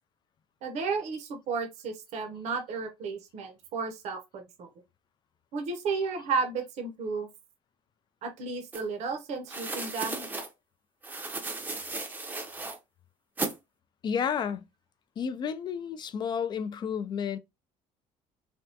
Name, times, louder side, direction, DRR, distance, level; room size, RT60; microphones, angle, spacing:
voice 1, 0.6-4.7 5.5-7.3 8.2-10.3, right 4 dB, 60° right, 0.7 m, -33 dB
sound 1, 8.7-8.8 9.5-10.5 11.0-12.8 13.4-13.6, right 2 dB, 15° right, 0.6 m, -35 dB
voice 2, 14.0-14.6 15.2-17.4, left 7 dB, 35° left, 0.4 m, -31 dB
3.4 x 2.2 x 2.6 m
cardioid pair, 125°, 13 cm